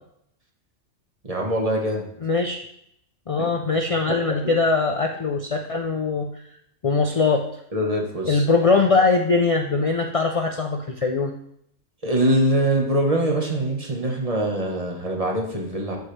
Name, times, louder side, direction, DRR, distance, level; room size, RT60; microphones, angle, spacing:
voice 1, 1.2-2.1 3.4-3.5 4.3-4.5 7.7-8.4 12.0-16.0, right 1 dB, 30° right, 1 dB, 1.3 m, -23 dB
voice 2, 2.2-2.6 3.3-6.3 6.8-7.5 8.3-11.3, left 4 dB, 65° left, 3 dB, 0.3 m, -21 dB
13.0 x 4.7 x 3.3 m, 0.72 s
omnidirectional pair, 1.4 m